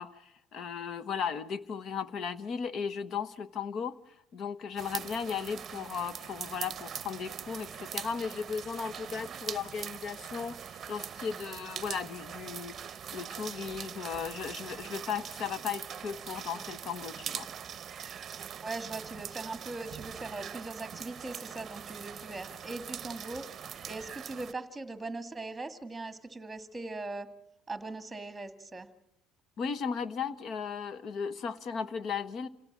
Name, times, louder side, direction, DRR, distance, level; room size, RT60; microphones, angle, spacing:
voice 1, 0.0-17.5 29.6-32.5, left 6 dB, 45° left, 15 dB, 1.2 m, -36 dB
sound 1, 4.8-24.5, right 8 dB, 35° right, 0.9 m, -42 dB
voice 2, 18.6-27.3 27.7-28.9, right 2 dB, 10° right, 9 dB, 2.1 m, -40 dB
27.5 x 17.5 x 7.5 m, 0.81 s
cardioid pair, 120°, 0 cm